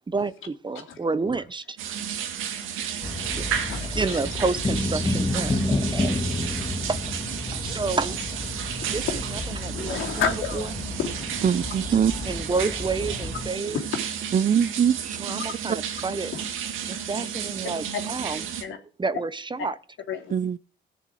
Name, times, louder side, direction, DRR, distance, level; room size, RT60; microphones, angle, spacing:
voice 1, 0.1-1.8 3.4-3.5 4.0-6.1 6.9-7.0 7.5-8.2 8.9-9.0 9.6-10.1 10.5-10.6 12.2-13.8 15.2-16.3 16.9-18.4 19.0-19.7, right 4 dB, 25° right, 1.0 m, -29 dB
voice 2, 0.9-1.4 3.7-4.4 8.8-9.2 9.7-11.3 13.7-13.8 15.4-15.5 16.3-16.4 17.9-18.1 18.6-18.8 20.1-20.3, left 6 dB, 80° left, 3.5 m, -31 dB
sound 1, 1.8-18.6, right 8 dB, 90° right, 2.3 m, -33 dB
sound 2, 3.0-13.5, left 2 dB, 20° left, 2.0 m, -30 dB
voice 3, 11.4-12.1 14.3-15.2 20.3-20.6, right 8 dB, 40° right, 0.6 m, -22 dB
17.5 x 7.0 x 5.0 m
cardioid pair, 90°, 20 cm